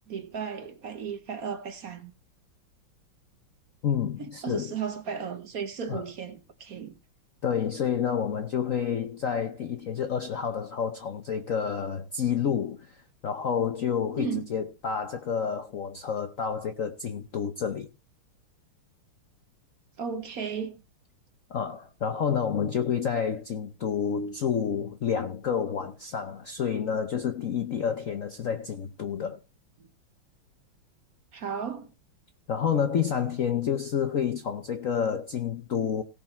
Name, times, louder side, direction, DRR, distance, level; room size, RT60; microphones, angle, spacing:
voice 1, 0.1-2.1 4.2-7.0 14.2-14.5 20.0-20.8 31.3-31.9, right 6 dB, 50° right, 1.2 m, -35 dB
voice 2, 3.8-4.7 5.9-6.0 7.4-17.9 21.5-29.4 32.5-36.0, left 7 dB, 65° left, 0.8 m, -29 dB
17.5 x 6.1 x 4.4 m
omnidirectional pair, 2.4 m